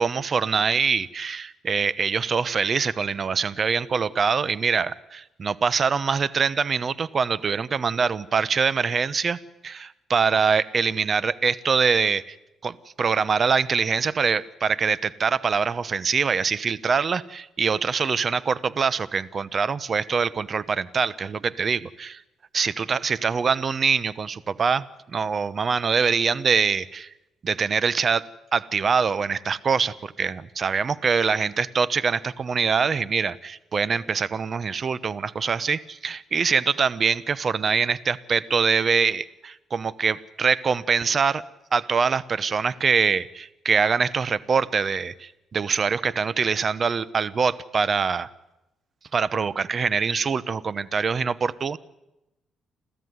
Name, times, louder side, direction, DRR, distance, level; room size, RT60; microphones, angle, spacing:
voice 1, 0.0-9.4 9.6-12.3 12.6-22.2 22.5-24.8 25.1-27.1 27.4-41.4 41.7-48.3 49.1-51.8, right 5 dB, 45° right, 18 dB, 0.9 m, -24 dB
29.5 x 13.5 x 9.5 m, 0.93 s
cardioid pair, 90°, 0 cm